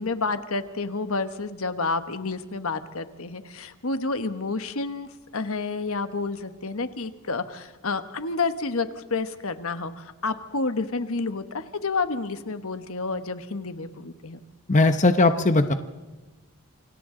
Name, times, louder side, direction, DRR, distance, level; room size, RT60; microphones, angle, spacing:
voice 1, 0.0-5.1 5.3-14.4, left 3 dB, 65° left, 10 dB, 1.2 m, -29 dB
voice 2, 14.7-15.7, left 2 dB, 35° left, 8 dB, 0.9 m, -19 dB
28.5 x 25.0 x 3.9 m, 1.1 s
head